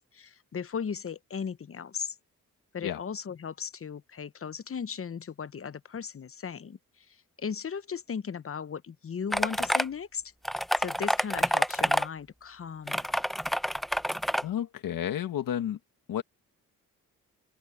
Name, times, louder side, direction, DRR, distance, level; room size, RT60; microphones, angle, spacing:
voice 1, 0.0-2.2 2.7-10.2 10.8-13.1, left 6 dB, 40° left, 0.9 m, -37 dB
sound 1, 9.3-9.8 10.4-12.1 12.9-14.4, equal, ahead, 0.7 m, -27 dB
voice 2, 14.4-15.8 16.1-16.2, left 10 dB, 80° left, 1.9 m, -31 dB
open air
cardioid pair, 60°, 33 cm